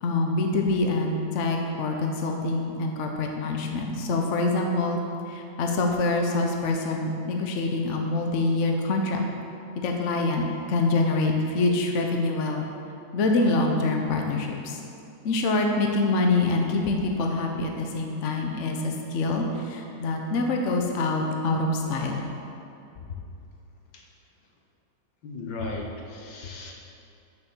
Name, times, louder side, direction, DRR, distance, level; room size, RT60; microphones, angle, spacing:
voice 1, 0.0-5.0 5.3-9.2 9.8-12.7 13.1-14.8 15.2-22.3, left 2 dB, 60° left, 2 dB, 0.8 m, -25 dB
voice 2, 25.2-26.7, left 2 dB, 80° left, 0 dB, 1.9 m, -36 dB
6.8 x 6.6 x 7.1 m, 2.7 s
omnidirectional pair, 2.1 m